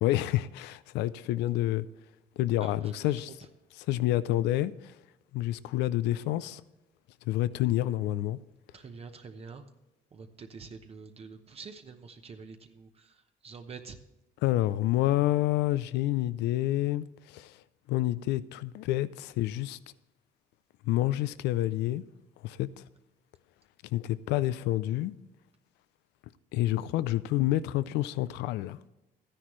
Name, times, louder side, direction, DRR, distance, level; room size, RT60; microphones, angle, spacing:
voice 1, 0.0-1.9 2.4-3.3 3.8-4.9 5.3-6.6 7.3-8.4 14.4-17.0 17.3-17.5 17.9-19.8 20.9-22.0 22.4-22.7 23.9-25.1 26.5-28.8, left 15 dB, 90° left, 0.5 m, -28 dB
voice 2, 2.6-3.1 8.7-9.6 10.1-13.1 13.4-14.0, right 5 dB, 35° right, 0.9 m, -46 dB
13.0 x 10.0 x 3.1 m
cardioid pair, 110°, 17 cm